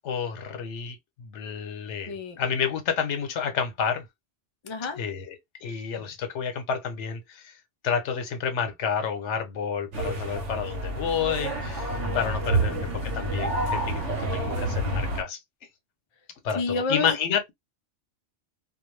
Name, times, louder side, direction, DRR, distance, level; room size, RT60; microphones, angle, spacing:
voice 1, 0.0-4.1 5.0-7.5 7.8-15.4 16.4-17.5, left 7 dB, 80° left, 1.0 m, -30 dB
voice 2, 2.1-2.4 4.6-5.0 12.0-13.0 16.6-17.2, left 3 dB, 45° left, 0.4 m, -31 dB
sound 1, 9.9-15.2, right 2 dB, 90° right, 1.0 m, -28 dB
2.3 x 2.2 x 3.1 m
omnidirectional pair, 1.2 m